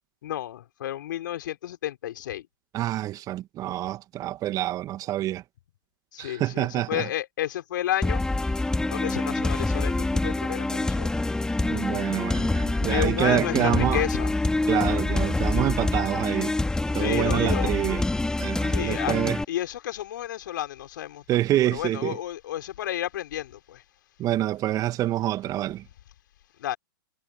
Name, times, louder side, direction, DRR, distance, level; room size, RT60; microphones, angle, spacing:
voice 1, 0.2-2.5 6.1-8.2 8.9-11.2 12.9-14.3 17.0-17.7 18.7-19.2 19.5-21.2 21.7-23.8 26.6-26.8, left 12 dB, 60° left, 5.3 m, -31 dB
voice 2, 2.7-5.4 6.2-7.1 11.7-14.0 14.7-16.5 16.9-18.1 18.4-19.4 21.3-22.2 24.2-25.8, right 14 dB, 30° right, 1.9 m, -27 dB
sound 1, 8.0-19.4, left 2 dB, 5° left, 3.6 m, -26 dB
figure-of-eight pair, 105°, 12 cm